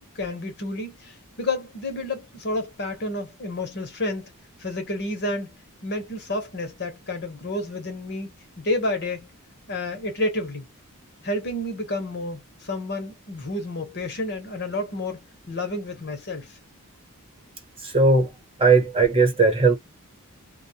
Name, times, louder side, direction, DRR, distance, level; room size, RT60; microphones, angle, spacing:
voice 1, 0.1-4.3 4.6-5.5 5.8-8.3 8.6-9.3 9.7-10.7 11.2-16.6, left 2 dB, 50° left, 1.0 m, -30 dB
voice 2, 17.8-18.3 18.6-19.7, right 3 dB, 25° right, 1.0 m, -18 dB
2.3 x 2.2 x 2.7 m
head